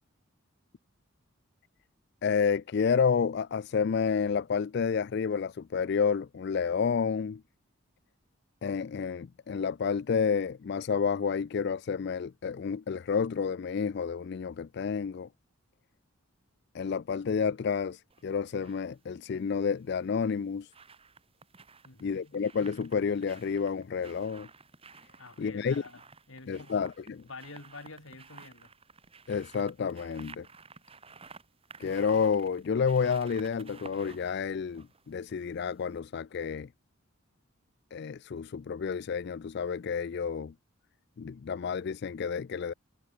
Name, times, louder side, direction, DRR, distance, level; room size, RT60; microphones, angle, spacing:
voice 1, 2.2-7.4 8.6-15.3 16.7-20.7 22.0-24.5 25.4-25.8 26.5-27.2 29.3-30.5 31.8-36.7 37.9-40.5 41.2-42.7, left 6 dB, 50° left, 0.3 m, -30 dB
sound 1, 18.1-18.8 20.1-35.6 35.9-36.0, right 4 dB, 25° right, 4.4 m, -53 dB
voice 2, 21.8-22.4 25.2-26.9 27.3-28.7, left 3 dB, 70° left, 3.6 m, -48 dB
head